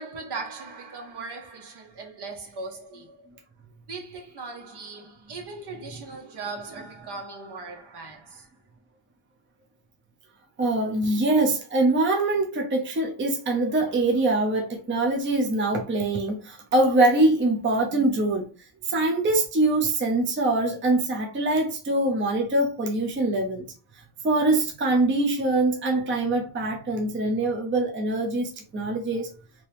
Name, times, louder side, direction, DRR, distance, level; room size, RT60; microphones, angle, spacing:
voice 1, 0.0-3.3 3.9-8.5, right 3 dB, 55° right, 1.2 m, -39 dB
voice 2, 10.6-18.5 18.8-23.7 24.2-29.3, right 2 dB, 25° right, 0.7 m, -23 dB
3.0 x 2.8 x 3.3 m
cardioid pair, 100°, 48 cm